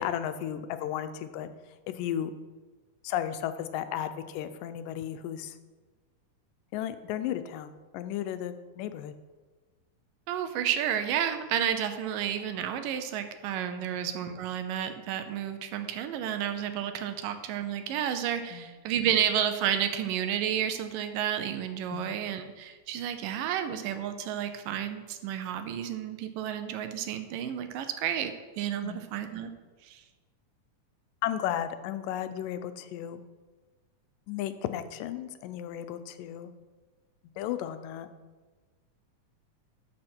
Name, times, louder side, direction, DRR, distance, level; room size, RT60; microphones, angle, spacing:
voice 1, 0.0-1.5 1.9-2.3 3.0-5.6 6.7-9.1 13.8-14.0 18.5-18.8 21.9-22.1 28.8-29.1 31.2-33.2 34.3-36.5 37.4-38.1, left 10 dB, 85° left, 10 dB, 2.2 m, -34 dB
voice 2, 10.3-29.5 29.9-30.0, right 9 dB, 85° right, 8 dB, 2.4 m, -31 dB
12.5 x 6.2 x 4.4 m, 1.3 s
omnidirectional pair, 3.8 m